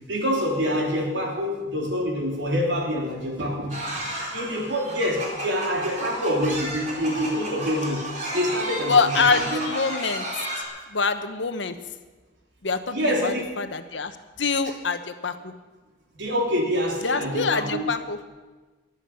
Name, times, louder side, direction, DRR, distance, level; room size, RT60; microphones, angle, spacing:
voice 1, 0.1-8.0 8.3-9.6 12.9-13.5 16.2-17.8, equal, 75° right, 0 dB, 3.4 m, -26 dB
sound 1, 3.7-10.6, right 1 dB, 40° right, 3.8 m, -32 dB
voice 2, 8.9-10.3 10.9-11.7 12.6-15.5 17.0-18.2, left 4 dB, 80° left, 9 dB, 1.1 m, -25 dB
22.0 x 8.4 x 7.0 m, 1.3 s
head